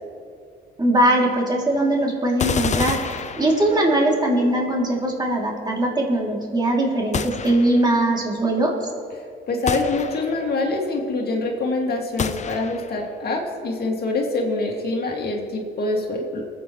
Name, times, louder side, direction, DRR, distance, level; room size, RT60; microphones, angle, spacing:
voice 1, 0.8-3.0 3.4-8.7, right 1 dB, 20° right, -2 dB, 2.7 m, -20 dB
sound 1, 2.4-4.0 7.1-8.0 9.7-10.6 12.2-13.1, left 6 dB, 35° left, 0.7 m, -28 dB
voice 2, 9.5-16.4, left 2 dB, 50° left, 0 dB, 2.1 m, -25 dB
24.5 x 8.5 x 3.1 m, 2.3 s
cardioid pair, 90°, 20 cm